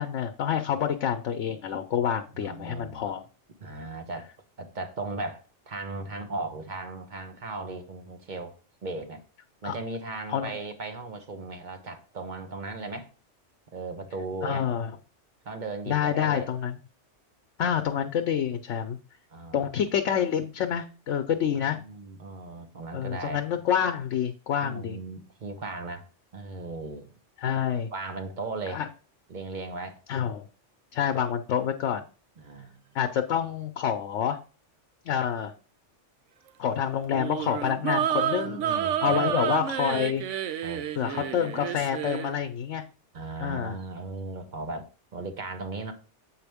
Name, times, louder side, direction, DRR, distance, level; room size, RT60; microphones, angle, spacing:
voice 1, 0.0-3.2 9.6-9.7 10.3-10.5 14.4-14.9 15.9-16.8 17.6-19.0 19.5-21.8 22.9-25.0 27.4-27.9 28.7-28.9 30.1-30.5 30.9-32.0 32.9-34.4 35.1-35.5 36.6-40.2 41.0-42.8 43.4-43.8, left 8 dB, 80° left, 1.0 m, -27 dB
voice 2, 2.3-3.2 3.6-4.3 4.6-8.5 8.8-9.2 9.6-13.1 13.7-14.6 15.4-16.5 19.3-19.7 21.5-23.4 24.6-26.0 26.3-27.1 27.9-28.8 29.3-30.0 32.4-32.9 38.4-39.2 40.6-40.8 41.1-41.3 43.1-45.9, right 3 dB, 40° right, 1.1 m, -37 dB
sound 1, 37.1-42.3, right 10 dB, 85° right, 0.9 m, -29 dB
7.6 x 4.8 x 3.5 m
omnidirectional pair, 1.2 m